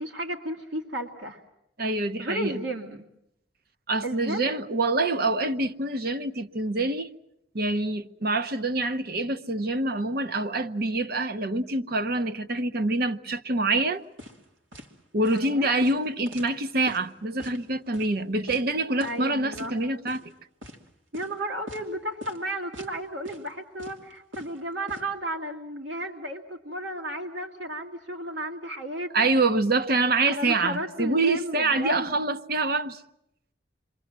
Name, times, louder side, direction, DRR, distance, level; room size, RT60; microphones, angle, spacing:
voice 1, 0.0-1.4 2.2-3.0 4.0-4.6 15.3-15.7 19.0-19.7 21.1-29.3 30.3-32.2, right 1 dB, 70° right, 2.1 m, -33 dB
voice 2, 1.8-2.6 3.9-7.1 7.5-14.0 15.1-20.2 29.1-33.0, right 2 dB, 55° right, 0.9 m, -26 dB
sound 1, 14.2-14.4 14.7-14.9 15.3-15.4 15.8-17.1 17.4-17.6 17.9-18.1 18.5-18.6 19.0-19.3 19.5-19.7 20.1-20.3 20.6-20.8 21.1-21.3 21.7-21.9 22.2-22.4 22.7-23.0 23.3-23.5 23.8-25.0, left 1 dB, 85° right, 2.8 m, -43 dB
28.0 x 23.5 x 7.4 m
head